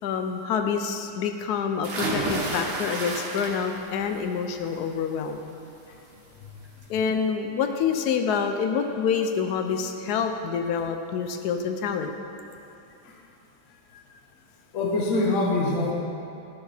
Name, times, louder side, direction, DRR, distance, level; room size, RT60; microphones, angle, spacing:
voice 1, 0.0-5.5 6.9-12.1, left 6 dB, 75° left, 6 dB, 0.9 m, -27 dB
sound 1, 1.8-3.9 4.3-4.8 6.1-6.2 6.6-6.7, right 2 dB, 75° right, 2.0 m, -30 dB
voice 2, 14.7-15.9, left 2 dB, 50° left, -2 dB, 1.2 m, -24 dB
13.5 x 6.3 x 3.4 m, 2.7 s
omnidirectional pair, 2.2 m